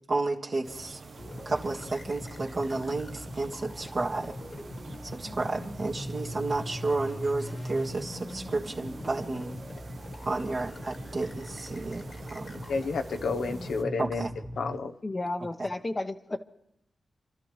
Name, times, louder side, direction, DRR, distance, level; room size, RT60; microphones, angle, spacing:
voice 1, 0.1-1.0 1.5-4.4 5.0-9.6 10.2-12.6 14.0-14.3 15.6-15.7, right 3 dB, 50° right, 0 dB, 1.8 m, -32 dB
sound 1, 0.6-13.8, right 3 dB, 65° right, 1.2 m, -47 dB
sound 2, 1.2-14.8, left 1 dB, 50° left, 1.6 m, -41 dB
voice 2, 12.7-14.3 14.6-15.0, left 4 dB, 85° left, 6 dB, 0.9 m, -30 dB
voice 3, 15.0-16.4, left 2 dB, 30° left, 8 dB, 0.9 m, -32 dB
28.0 x 13.0 x 3.3 m, 0.81 s
cardioid pair, 85°, 0 cm